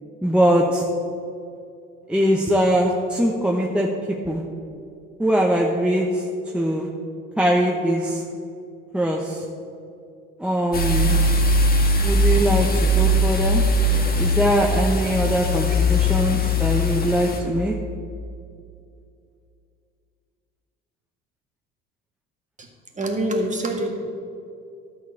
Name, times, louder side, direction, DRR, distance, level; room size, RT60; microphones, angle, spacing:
voice 1, 0.2-0.8 2.1-3.9 4.3-4.4 5.2-6.2 6.5-6.9 7.4-8.2 8.9-9.4 10.4-11.2 12.0-12.7 13.0-13.6 14.1-17.7, equal, 5° right, -1 dB, 1.0 m, -21 dB
sound 1, 10.7-17.4, left 1 dB, 30° left, 1.6 m, -20 dB
voice 2, 22.9-24.0, right 1 dB, 25° right, 1 dB, 1.9 m, -25 dB
12.0 x 4.3 x 7.1 m, 2.5 s
hypercardioid pair, 70°, 31 cm